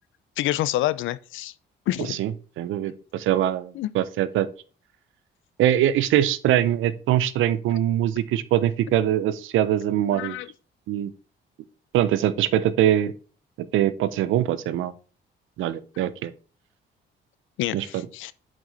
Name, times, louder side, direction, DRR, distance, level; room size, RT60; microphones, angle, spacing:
voice 1, 0.4-1.5 1.9-2.2 3.7-3.9 10.1-10.5 17.6-18.3, left 15 dB, 80° left, 0.5 m, -27 dB
voice 2, 2.6-4.5 5.6-10.4 10.9-11.1 11.9-13.1 13.7-14.9 15.6-16.3 17.7-18.0, right 11 dB, 85° right, 0.6 m, -23 dB
7.3 x 5.1 x 4.0 m
cardioid pair, 90°, 20 cm